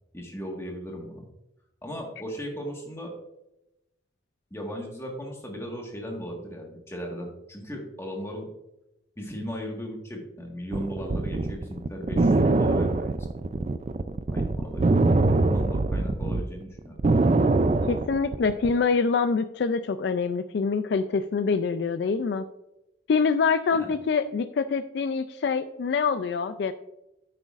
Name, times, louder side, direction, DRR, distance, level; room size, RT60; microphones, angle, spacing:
voice 1, 0.1-1.3 1.8-3.1 4.5-8.5 9.2-13.4 14.3-16.9 23.7-23.9, equal, 15° left, 0 dB, 1.5 m, -37 dB
sound 1, 10.7-16.4 16.8-18.7, right 2 dB, 35° right, 0.3 m, -23 dB
voice 2, 17.9-22.4 23.1-26.7, left 5 dB, 60° left, 12 dB, 0.3 m, -25 dB
9.9 x 7.9 x 2.5 m, 0.90 s
head